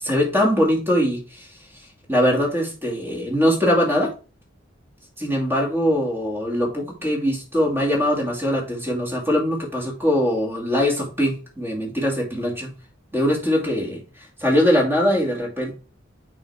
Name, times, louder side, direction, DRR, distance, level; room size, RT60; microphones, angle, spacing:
voice 1, 0.0-1.5 2.1-4.1 5.2-12.7 13.1-14.0 14.4-15.7, equal, 10° right, -1 dB, 2.5 m, -21 dB
6.2 x 5.0 x 4.3 m, 0.33 s
head